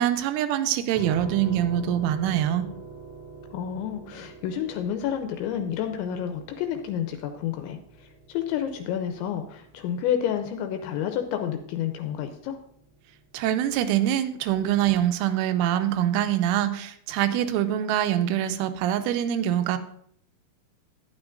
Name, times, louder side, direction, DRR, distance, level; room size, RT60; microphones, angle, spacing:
voice 1, 0.0-2.7 13.3-19.8, right 11 dB, 85° right, 10 dB, 3.0 m, -24 dB
sound 1, 0.9-13.8, right 4 dB, 10° left, 1.6 m, -45 dB
voice 2, 3.5-12.6, left 9 dB, 80° left, 6 dB, 2.8 m, -30 dB
12.0 x 9.7 x 2.5 m, 0.68 s
omnidirectional pair, 5.6 m